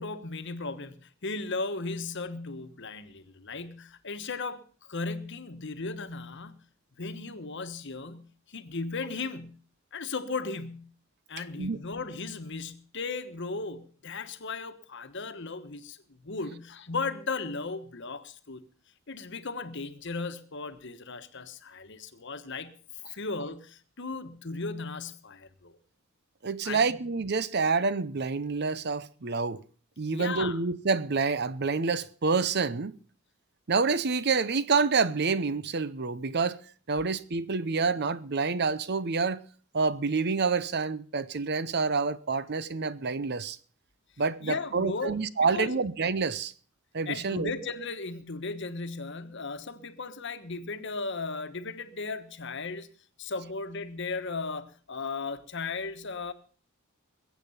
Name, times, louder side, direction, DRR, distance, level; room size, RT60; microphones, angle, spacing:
voice 1, 0.0-6.6 7.0-9.6 9.9-10.9 11.3-18.6 19.1-22.7 23.1-25.8 26.6-26.8 30.1-30.6 44.4-45.1 45.4-45.8 47.1-52.9 53.2-56.3, left 3 dB, 55° left, 1.3 m, -36 dB
voice 2, 26.4-29.6 30.0-32.9 33.7-36.6 36.9-39.4 39.7-43.6 44.2-46.5 46.9-47.5, right 4 dB, 50° right, 0.7 m, -28 dB
22.0 x 8.3 x 5.6 m
head